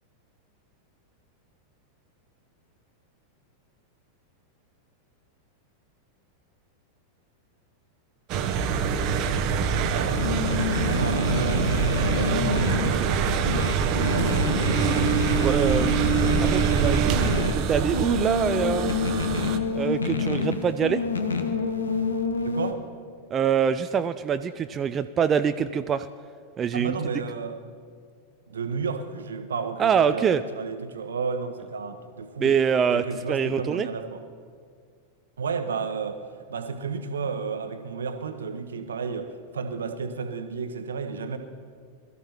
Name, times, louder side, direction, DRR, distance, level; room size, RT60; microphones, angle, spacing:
sound 1, 8.3-19.6, right 7 dB, 40° right, 0.8 m, -25 dB
voice 1, 9.1-10.3 10.7-13.5 13.9-14.5 22.4-22.8 26.7-27.6 28.5-32.6 32.9-34.2 35.4-36.2 36.5-41.4, right 5 dB, 70° right, 8 dB, 0.9 m, -32 dB
sound 2, 10.2-22.7, left 4 dB, 70° left, 1.0 m, -28 dB
voice 2, 15.4-16.0 16.4-18.9 19.8-21.0 23.3-26.1 26.6-26.9 29.8-30.4 32.4-33.9, right 7 dB, 25° right, 11 dB, 0.3 m, -25 dB
21.5 x 13.5 x 3.0 m, 2.1 s
figure-of-eight pair, 90°, 0 cm